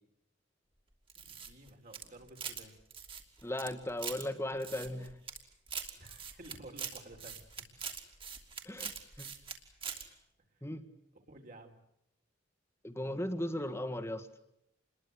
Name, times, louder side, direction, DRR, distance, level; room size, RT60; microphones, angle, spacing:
sound 1, 1.1-2.6 2.9-4.2 4.6-5.4 5.7-9.6 9.8-10.0, right 6 dB, 30° right, 3.1 m, -42 dB
voice 1, 1.2-2.7 6.0-7.6 8.8-9.1 10.5-10.7 11.1-11.8, right 1 dB, 45° right, 4 dB, 3.9 m, -53 dB
voice 2, 3.4-5.1 8.6-9.3 10.6-10.8 12.8-14.3, left 1 dB, 15° left, 9 dB, 1.8 m, -37 dB
28.5 x 22.0 x 8.2 m, 0.79 s
head